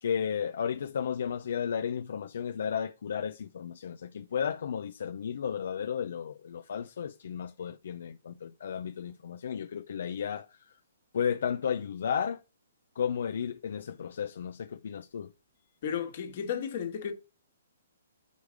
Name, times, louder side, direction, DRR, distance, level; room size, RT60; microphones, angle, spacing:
voice 1, 0.0-10.5 11.1-12.4 13.0-15.3, left 7 dB, 60° left, 0.5 m, -33 dB
voice 2, 15.8-17.1, left 8 dB, 40° left, 1.5 m, -33 dB
5.2 x 4.9 x 6.4 m
hypercardioid pair, 170°, 0 cm